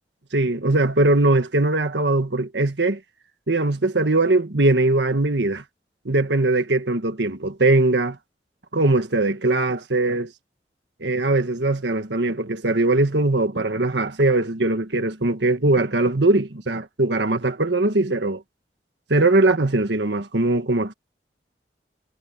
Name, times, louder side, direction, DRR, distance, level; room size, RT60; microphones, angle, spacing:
voice 1, 0.3-3.0 3.5-5.6 6.0-8.2 8.7-10.3 11.0-18.4 19.1-20.9, right 2 dB, 80° right, 1.6 m, -20 dB
head